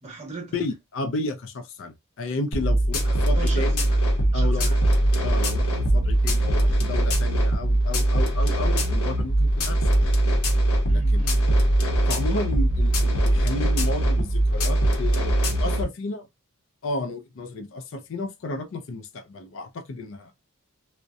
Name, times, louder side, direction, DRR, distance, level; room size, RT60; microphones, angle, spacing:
voice 1, 0.0-0.6 3.0-4.8 10.9-11.4, right 3 dB, 30° right, 1.0 m, -39 dB
voice 2, 0.5-3.7 4.3-4.8 5.2-9.9 10.9-11.2 12.1-16.3 16.8-20.3, left 2 dB, 55° left, 0.4 m, -32 dB
sound 1, 2.5-15.8, right 1 dB, 85° left, 0.7 m, -21 dB
2.6 x 2.0 x 2.3 m
head